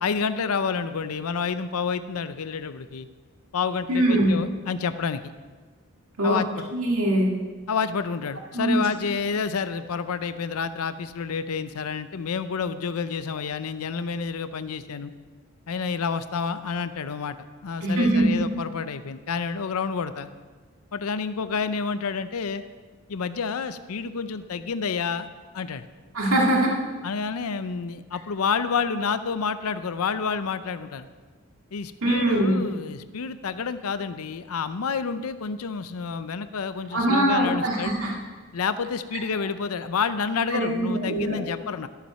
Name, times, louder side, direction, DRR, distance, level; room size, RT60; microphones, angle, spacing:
voice 1, 0.0-3.1 3.5-5.3 6.2-6.7 7.7-15.1 15.7-17.4 17.6-20.3 20.9-22.6 23.1-25.3 25.5-25.9 27.0-31.1 31.7-38.0 38.5-41.9, left 5 dB, 90° left, 12 dB, 0.6 m, -29 dB
voice 2, 3.9-4.3 6.2-6.4 6.7-7.3 8.5-8.8 17.8-18.4 26.1-26.7 32.0-32.5 36.9-38.1 40.5-41.4, right 1 dB, 75° right, -2 dB, 2.1 m, -22 dB
13.0 x 7.3 x 5.7 m, 1.4 s
head